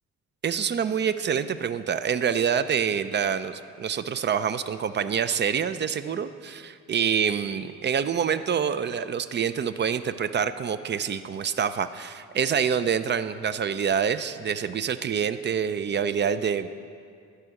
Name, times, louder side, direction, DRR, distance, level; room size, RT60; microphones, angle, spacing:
voice 1, 0.4-16.7, right 7 dB, 35° right, 13 dB, 0.4 m, -26 dB
14.0 x 4.9 x 6.4 m, 2.3 s
cardioid pair, 90°, 30 cm